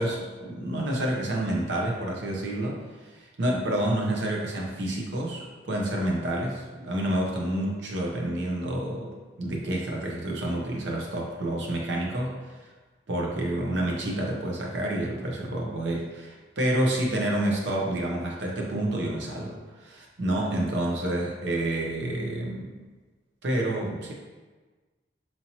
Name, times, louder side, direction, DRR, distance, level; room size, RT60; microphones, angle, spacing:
voice 1, 0.0-12.6 13.1-22.7 23.4-24.1, right 1 dB, 85° right, -1 dB, 0.7 m, -29 dB
4.3 x 2.8 x 2.7 m, 1.3 s
head